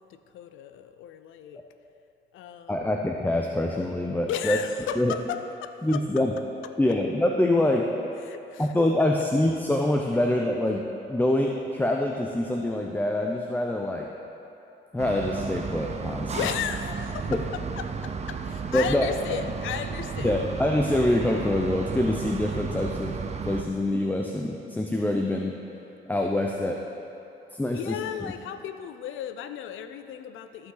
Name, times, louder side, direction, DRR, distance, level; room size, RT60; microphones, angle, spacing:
voice 1, 0.0-1.6 2.3-2.9 4.3-6.0 6.6-7.0 8.2-8.7 16.3-20.4 27.7-30.7, left 9 dB, 80° left, 10 dB, 0.5 m, -35 dB
voice 2, 2.7-4.6 5.0-5.1 5.8-6.3 6.8-7.9 8.6-14.1 14.9-16.4 17.3-17.4 18.7-19.1 20.2-23.2 23.4-25.5 26.1-26.8 27.5-28.0, left 1 dB, 10° left, 1 dB, 0.6 m, -25 dB
sound 1, 15.0-23.6, right 5 dB, 35° right, 0.6 m, -33 dB
14.0 x 5.6 x 3.9 m, 2.9 s
cardioid pair, 90°, 20 cm